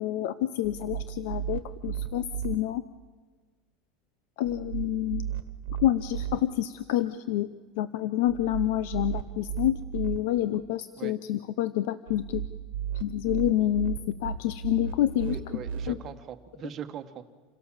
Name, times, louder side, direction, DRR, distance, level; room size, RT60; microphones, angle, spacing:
voice 1, 0.0-2.8 4.4-5.3 5.8-7.5 7.8-12.4 13.0-15.4 15.9-16.0, left 13 dB, 65° left, 13 dB, 0.7 m, -28 dB
sound 1, 0.6-2.6 4.4-6.4 8.3-10.2 12.1-15.9, right 9 dB, 80° right, 1.4 m, -35 dB
voice 2, 15.2-17.2, right 9 dB, 25° right, 7 dB, 1.3 m, -40 dB
27.5 x 17.0 x 7.3 m, 1.4 s
supercardioid pair, 165°, 0 cm